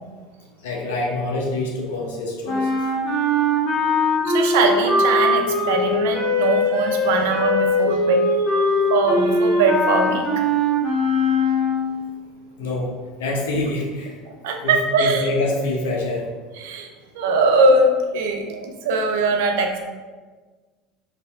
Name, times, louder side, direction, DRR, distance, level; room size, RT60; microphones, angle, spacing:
voice 1, 0.6-2.7 12.6-12.9 13.2-14.1 14.6-16.2, left 2 dB, 85° left, -1 dB, 0.8 m, -25 dB
sound 1, 2.4-12.0, left 1 dB, 65° left, 1.2 m, -21 dB
voice 2, 4.2-10.3 14.3-15.3 16.6-16.9 17.1-19.8, right 3 dB, 80° right, 3 dB, 0.5 m, -21 dB
3.0 x 2.8 x 4.1 m, 1.4 s
supercardioid pair, 90°, 0 cm